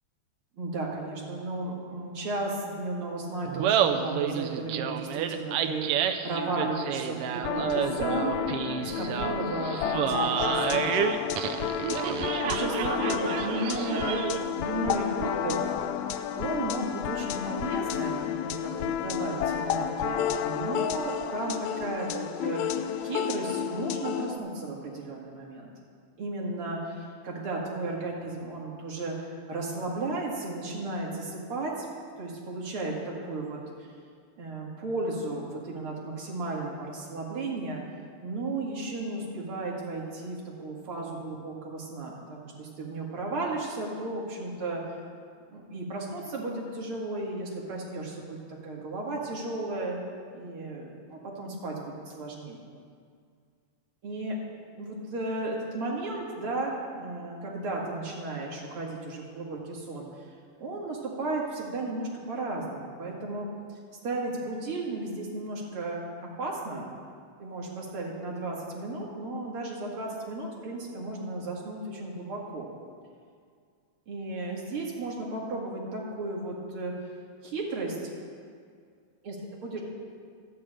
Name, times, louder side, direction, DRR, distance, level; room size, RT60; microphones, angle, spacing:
voice 1, 0.6-8.5 8.8-11.3 12.5-15.7 16.4-25.7 26.2-29.2 29.5-31.9 32.2-33.9 34.4-37.8 38.2-44.8 45.5-50.0 50.3-52.6 54.0-54.3 54.7-60.1 60.6-63.8 64.0-66.0 66.4-66.9 67.4-72.7 74.1-76.9 77.4-78.0 79.2-79.8, right 2 dB, 50° right, -3 dB, 2.7 m, -34 dB
Laughter, 3.4-14.5, right 8 dB, 85° right, 1.3 m, -29 dB
sound 1, 7.4-24.4, left 9 dB, 80° left, 1.9 m, -31 dB
12.5 x 6.7 x 8.8 m, 2.2 s
omnidirectional pair, 3.3 m